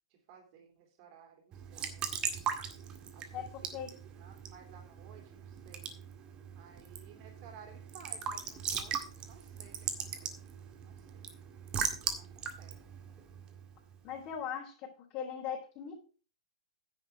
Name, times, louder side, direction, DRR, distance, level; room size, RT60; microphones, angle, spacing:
voice 1, 0.1-1.9 3.1-3.4 4.0-6.0 6.5-10.3 10.8-11.3 12.0-12.8, right 7 dB, 45° right, 3 dB, 3.4 m, -57 dB
Raindrop / Drip / Trickle dribble, 1.5-14.0, right 7 dB, 25° right, 1.9 m, -40 dB
voice 2, 3.3-3.9 14.0-15.9, left 8 dB, 35° left, -3 dB, 3.8 m, -40 dB
10.0 x 7.7 x 4.8 m, 0.36 s
hypercardioid pair, 130°, 3 cm